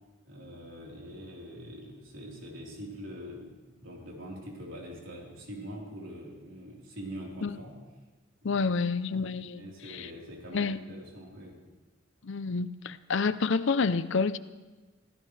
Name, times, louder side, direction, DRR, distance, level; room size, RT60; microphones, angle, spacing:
voice 1, 0.3-7.7 8.4-8.6 9.1-9.2 9.6-11.6, equal, 75° right, -3 dB, 4.0 m, -44 dB
voice 2, 8.4-10.1 10.5-10.8 12.2-14.4, left 4 dB, 65° left, 14 dB, 0.6 m, -29 dB
25.5 x 16.0 x 3.3 m, 1.2 s
head